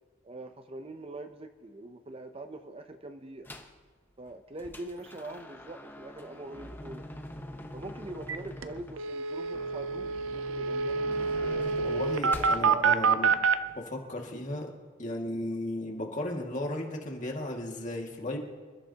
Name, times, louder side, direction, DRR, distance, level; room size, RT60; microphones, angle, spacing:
voice 1, 0.2-3.5 4.2-7.1 7.7-11.8 12.1-13.2, right 2 dB, 30° right, 8 dB, 0.6 m, -43 dB
sound 1, 3.4-3.8 4.3-12.6, left 1 dB, 10° left, 0.9 m, -44 dB
sound 2, 8.3-8.4 8.6-8.7 9.0-13.6, right 5 dB, 85° right, 0.6 m, -27 dB
voice 2, 11.8-13.4 13.7-14.7 15.0-18.4, left 1 dB, 40° left, 0 dB, 2.0 m, -35 dB
27.5 x 13.5 x 2.9 m, 1.4 s
head